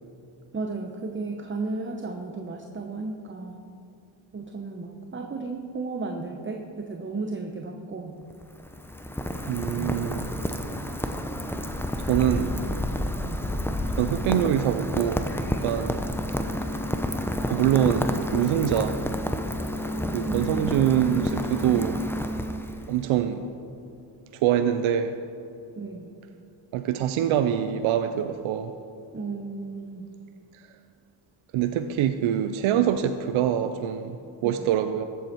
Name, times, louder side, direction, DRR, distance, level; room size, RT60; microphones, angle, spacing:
voice 1, 0.5-3.7 4.3-8.2 9.7-10.1 12.2-12.9 13.2-13.5 20.2-20.8 25.8-26.1 29.1-30.1 34.4-34.7, right 3 dB, 25° right, 3 dB, 0.9 m, -34 dB
Rain, 8.2-23.0, equal, 5° left, 0.8 m, -30 dB
voice 2, 9.5-10.3 12.0-12.5 14.0-15.3 15.6-16.0 17.5-19.0 20.1-22.0 22.9-23.4 24.3-25.1 26.7-28.7 31.5-34.2 34.4-35.1, right 10 dB, 85° right, 9 dB, 0.6 m, -24 dB
14.0 x 8.2 x 4.5 m, 2.7 s
cardioid pair, 65°, 47 cm